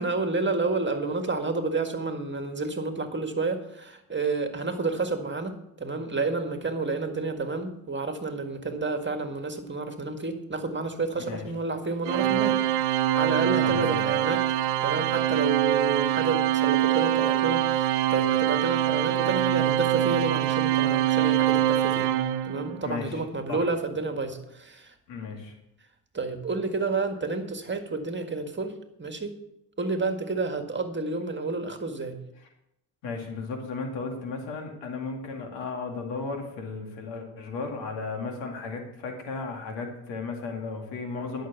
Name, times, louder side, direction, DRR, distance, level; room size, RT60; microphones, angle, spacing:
voice 1, 0.0-12.6 12.9-14.4 14.8-22.1 22.4-24.9 25.3-25.4 26.1-28.7 29.0-29.3 29.8-32.2, right 3 dB, 25° right, 6 dB, 1.8 m, -30 dB
Organ, 12.1-22.8, right 12 dB, 65° right, 0.9 m, -24 dB
voice 2, 13.6-14.1 22.8-23.1 23.5-23.7 25.1-25.5 33.0-41.5, left 4 dB, 80° left, 3 dB, 2.4 m, -35 dB
11.5 x 6.5 x 7.0 m, 0.82 s
supercardioid pair, 60°, 44 cm